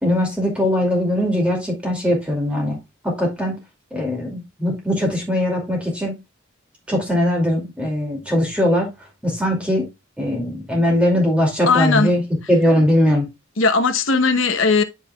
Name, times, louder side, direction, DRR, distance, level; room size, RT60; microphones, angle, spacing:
voice 1, 0.0-2.8 3.0-3.6 3.9-6.2 6.9-8.9 9.2-9.9 10.2-12.2 12.5-13.3, left 1 dB, 5° right, 2.4 m, -20 dB
voice 2, 11.7-12.1 13.6-14.8, left 4 dB, 70° left, 0.9 m, -17 dB
11.0 x 5.7 x 2.3 m
head